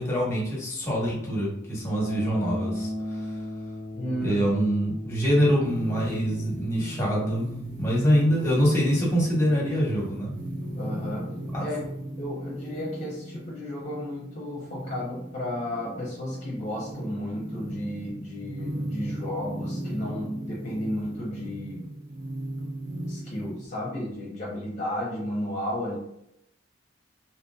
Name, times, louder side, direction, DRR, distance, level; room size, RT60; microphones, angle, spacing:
voice 1, 0.0-3.4 4.2-7.5 7.8-10.3 11.5-11.6, equal, 15° left, -4 dB, 1.1 m, -25 dB
sound 1, 2.0-12.1, left 1 dB, 25° right, 1.1 m, -38 dB
voice 2, 3.9-4.4 10.8-11.3 11.6-11.8 12.2-21.8 23.1-25.9, left 1 dB, 40° left, -5 dB, 0.7 m, -33 dB
sound 2, 5.6-23.7, right 1 dB, 65° right, 0.8 m, -37 dB
2.9 x 2.9 x 2.3 m, 0.78 s
head